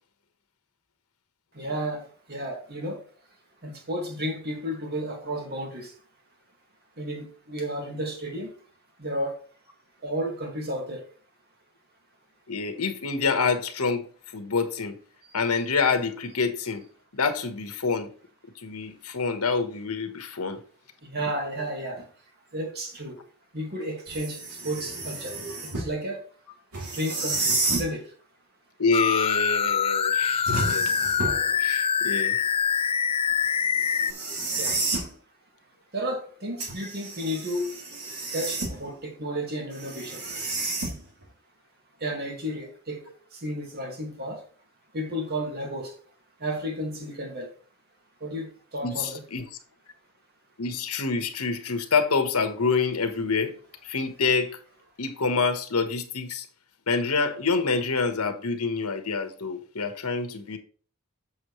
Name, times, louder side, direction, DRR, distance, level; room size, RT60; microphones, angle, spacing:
voice 1, 1.5-3.0 3.6-5.9 7.0-8.6 9.0-9.4 10.0-11.0 15.3-15.4 21.0-22.1 22.5-23.2 23.5-25.4 25.6-26.3 26.9-28.1 34.6-34.8 35.9-37.7 38.3-40.2 42.0-44.4 44.9-45.9 46.4-47.5 48.2-49.2, equal, 45° right, 2.1 m, -32 dB
voice 2, 12.5-14.0 14.3-15.0 15.3-16.8 17.1-18.1 18.6-20.6 28.8-30.9 31.6-32.4 48.8-49.4 50.6-53.5 53.8-54.6 55.0-56.4 56.9-60.6, left 4 dB, 75° left, 1.3 m, -27 dB
sound 1, 24.1-25.9 26.7-27.9 30.5-31.5 33.7-35.1 36.6-38.9 39.7-41.2, right 2 dB, 75° right, 2.8 m, -31 dB
sound 2, 28.9-34.1, left 7 dB, 25° left, 0.3 m, -24 dB
7.5 x 7.2 x 3.2 m
head